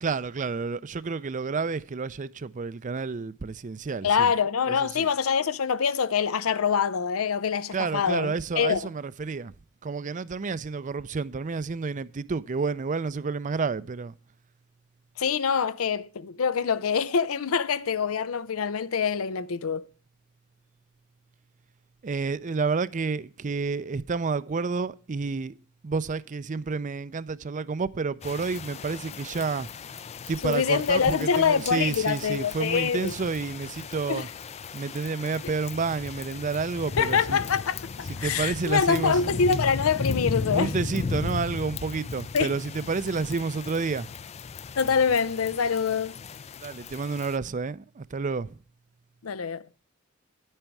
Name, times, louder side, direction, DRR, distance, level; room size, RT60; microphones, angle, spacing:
voice 1, 0.0-4.3 4.6-5.1 7.7-9.5 9.8-14.1 22.0-25.5 25.8-29.7 30.3-34.3 34.7-37.4 38.0-39.2 40.5-44.1 46.6-48.6, right 4 dB, 40° right, 0.5 m, -30 dB
voice 2, 4.0-8.9 15.2-19.9 30.4-33.1 34.1-34.3 35.4-35.5 37.0-40.7 42.3-42.5 44.8-46.1 49.2-49.6, left 6 dB, 85° left, 0.6 m, -25 dB
sound 1, 28.2-47.4, left 4 dB, 30° left, 0.4 m, -36 dB
10.0 x 9.0 x 4.6 m
head